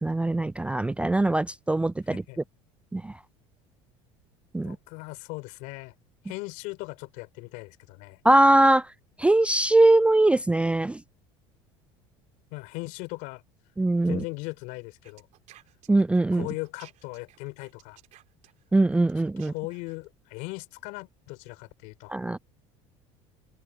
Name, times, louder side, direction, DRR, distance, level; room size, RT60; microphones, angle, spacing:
voice 1, 0.0-2.2 2.9-3.1 4.5-4.8 8.2-8.9 9.2-11.0 13.8-14.2 15.9-16.5 18.7-19.5 22.1-22.4, right 2 dB, 10° right, 0.3 m, -21 dB
voice 2, 2.1-2.4 4.6-5.9 6.2-8.2 12.5-13.4 14.1-15.3 16.3-18.0 19.5-22.1, left 25 dB, 70° left, 3.8 m, -38 dB
sound 1, 15.0-20.0, right 14 dB, 60° right, 3.2 m, -55 dB
open air
supercardioid pair, 85°, 14 cm